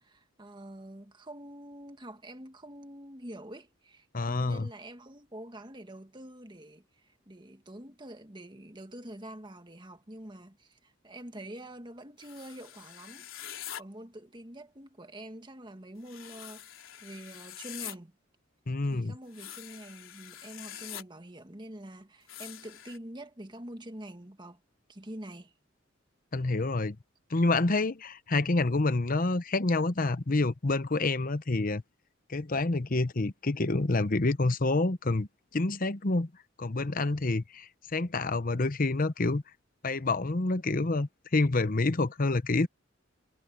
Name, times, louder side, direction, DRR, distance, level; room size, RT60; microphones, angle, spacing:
voice 1, 0.0-13.3 13.5-16.6 17.0-18.1 18.9-24.6 24.9-25.5, right 1 dB, 25° right, 1.8 m, -46 dB
voice 2, 4.1-4.7 18.7-19.2 26.3-27.0 27.3-31.8 32.3-35.3 35.5-36.3 36.6-39.4 39.8-42.7, left 2 dB, 45° left, 0.9 m, -28 dB
sound 1, 12.2-13.8 16.0-18.0 19.3-21.0 22.3-23.0, left 11 dB, 80° left, 3.6 m, -44 dB
head